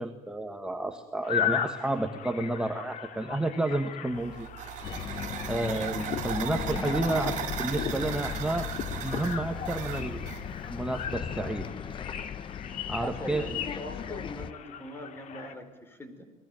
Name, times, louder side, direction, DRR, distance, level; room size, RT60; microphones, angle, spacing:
voice 1, 0.0-4.5 4.9-5.2 5.5-8.7 9.0-10.3 10.7-11.7 12.9-13.5, right 2 dB, 5° right, 4 dB, 1.6 m, -31 dB
sound 1, 1.2-15.5, left 9 dB, 60° left, 2.8 m, -37 dB
sound 2, 4.2-10.4, right 10 dB, 55° right, 4.6 m, -37 dB
Bus, 4.8-14.5, left 7 dB, 35° left, 1.1 m, -37 dB
voice 2, 13.0-16.2, equal, 15° left, 9 dB, 4.9 m, -41 dB
30.0 x 21.0 x 9.2 m, 1.1 s
cardioid pair, 135°, 14 cm